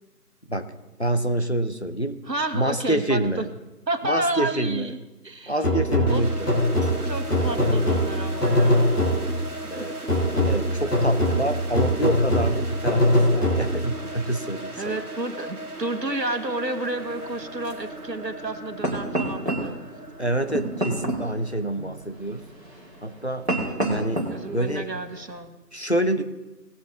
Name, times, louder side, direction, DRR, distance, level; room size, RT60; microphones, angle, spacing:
voice 1, 1.0-2.2 2.5-3.4 4.0-4.9 5.5-6.3 9.7-10.0 10.5-15.0 20.2-22.4 23.0-23.5 23.9-24.2 24.5-24.9 25.7-26.2, right 1 dB, 45° left, 8 dB, 0.7 m, -26 dB
voice 2, 2.3-3.5 3.9-5.5 6.1-6.2 7.0-9.2 9.6-10.1 14.8-19.8 23.6-23.9 24.3-25.6, right 2 dB, 85° right, 7 dB, 1.5 m, -31 dB
sound 1, 5.6-9.5 10.1-14.0, left 1 dB, 70° left, 3.5 m, -22 dB
sound 2, 6.1-22.9, right 1 dB, 65° right, 1.4 m, -37 dB
sound 3, 16.8-25.4, right 1 dB, 40° right, 2.5 m, -32 dB
19.0 x 6.6 x 3.7 m, 1.1 s
figure-of-eight pair, 175°, 49 cm